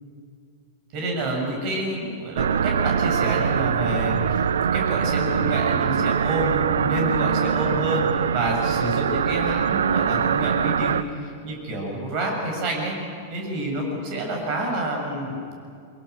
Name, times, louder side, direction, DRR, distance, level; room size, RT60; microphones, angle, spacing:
voice 1, 0.9-4.4 4.7-13.0 13.3-15.5, right 1 dB, 40° right, 1 dB, 7.3 m, -28 dB
sound 1, 2.4-11.0, right 7 dB, 65° right, 0.6 m, -23 dB
24.5 x 22.5 x 6.7 m, 2.4 s
figure-of-eight pair, 95°, 0 cm